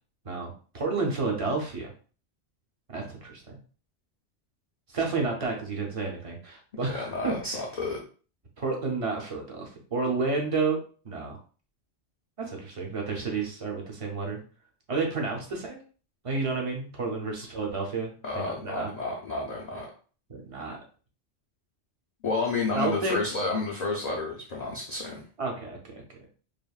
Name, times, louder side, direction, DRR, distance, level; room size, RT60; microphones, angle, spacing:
voice 1, 0.2-1.9 2.9-3.6 4.9-7.6 8.6-10.8 11.0-11.4 12.4-14.4 14.9-15.8 16.2-18.9 20.3-20.8 22.7-23.2 25.4-25.8, right 4 dB, 35° right, 1 dB, 0.6 m, -31 dB
voice 2, 6.8-8.0 18.2-19.9 22.2-25.2, left 3 dB, 50° left, -2 dB, 0.5 m, -30 dB
3.4 x 2.1 x 2.3 m, 0.39 s
omnidirectional pair, 1.2 m